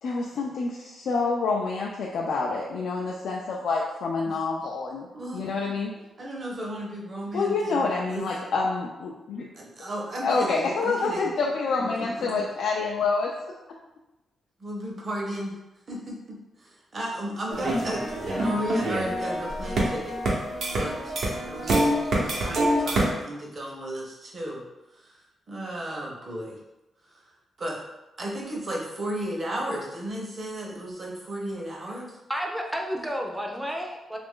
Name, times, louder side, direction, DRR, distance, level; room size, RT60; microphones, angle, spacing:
voice 1, 0.0-5.1 5.3-6.0 7.3-9.5 10.2-13.3, left 4 dB, 75° left, -2 dB, 0.4 m, -27 dB
voice 2, 5.1-5.7 6.2-8.2 9.5-11.4 11.8-12.4 14.6-15.6 15.9-20.2 20.7-21.1 21.5-25.2 25.5-26.6 27.1-27.2 27.6-27.8 28.2-32.1, right 1 dB, 35° right, -2 dB, 0.8 m, -34 dB
sound 1, 17.5-23.1, right 1 dB, 65° right, 0.8 m, -26 dB
voice 3, 32.3-34.2, equal, 5° right, 0 dB, 0.5 m, -31 dB
3.0 x 2.5 x 3.6 m, 0.98 s
wide cardioid pair, 135°, 0 cm